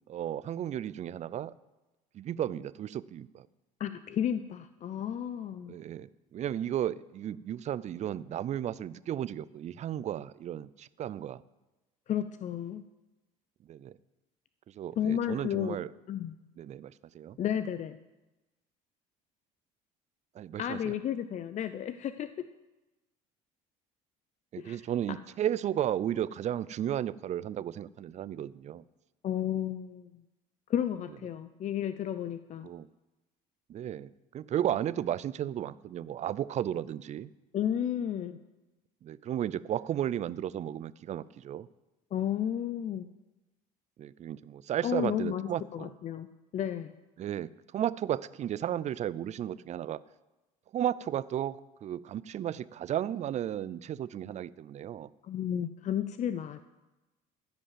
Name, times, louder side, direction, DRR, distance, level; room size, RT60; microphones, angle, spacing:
voice 1, 0.1-1.5 2.1-3.5 5.7-11.4 13.7-14.0 14.7-15.9 16.6-17.4 20.3-20.9 24.5-28.8 32.6-32.9 33.7-37.3 39.0-41.7 44.0-45.9 47.2-50.0 50.7-55.1, right 11 dB, 40° right, 18 dB, 0.4 m, -34 dB
voice 2, 3.8-5.7 12.1-12.8 15.0-15.8 16.1-16.3 17.4-18.0 20.6-22.3 24.6-24.8 29.2-30.2 30.7-32.7 37.5-38.4 42.1-43.1 44.8-46.3 46.5-46.9 55.2-56.7, left 9 dB, 45° left, 11 dB, 0.5 m, -32 dB
13.5 x 5.3 x 7.5 m, 1.1 s
supercardioid pair, 80°, 17 cm